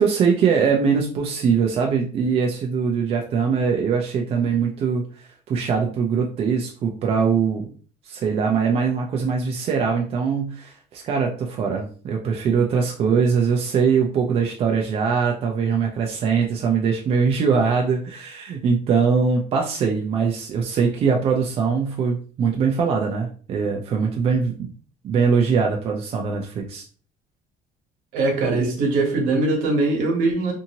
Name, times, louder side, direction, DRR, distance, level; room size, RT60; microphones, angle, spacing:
voice 1, 0.0-7.7 8.1-24.5 25.0-26.8, right 6 dB, 40° right, 1 dB, 0.4 m, -22 dB
voice 2, 28.1-30.5, right 3 dB, 70° right, 2 dB, 1.1 m, -21 dB
2.6 x 2.6 x 2.8 m, 0.43 s
cardioid pair, 145°, 15 cm